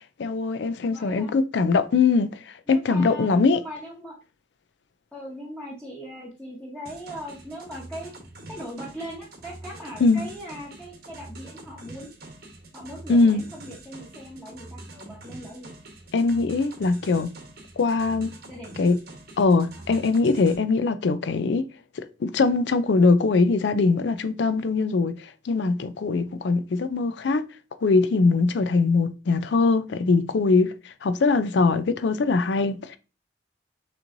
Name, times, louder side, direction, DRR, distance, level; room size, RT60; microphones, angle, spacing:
voice 1, 0.2-2.3 2.7-3.6 10.0-10.2 13.1-13.4 16.1-17.3 17.8-18.3 18.8-19.0 19.4-21.7 22.0-27.4 27.8-33.0, left 4 dB, 65° left, 0.4 m, -22 dB
voice 2, 0.9-1.3 2.7-4.2 5.1-8.1 8.5-12.1 12.7-15.7 18.4-18.7 19.8-19.9, equal, 5° left, 1.0 m, -39 dB
sound 1, 6.9-20.6, right 2 dB, 55° right, 1.0 m, -45 dB
6.3 x 3.0 x 2.6 m
head